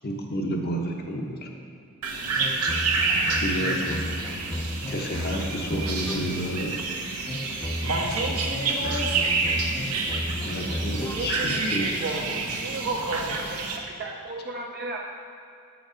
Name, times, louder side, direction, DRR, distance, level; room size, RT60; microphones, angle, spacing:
voice 1, 0.0-1.5 3.4-4.0 4.9-6.7 10.4-11.8, equal, 45° left, 1 dB, 0.8 m, -30 dB
sound 1, 2.0-13.8, right 4 dB, 90° right, 0.9 m, -29 dB
sound 2, 2.3-6.6 7.3-11.5, left 1 dB, 15° left, 0.5 m, -33 dB
voice 2, 7.8-9.3 11.1-13.4, right 2 dB, 75° right, -2 dB, 1.3 m, -29 dB
voice 3, 13.3-13.7 14.0-15.0, right 2 dB, 45° right, -1 dB, 0.5 m, -35 dB
8.3 x 5.0 x 5.0 m, 2.4 s
head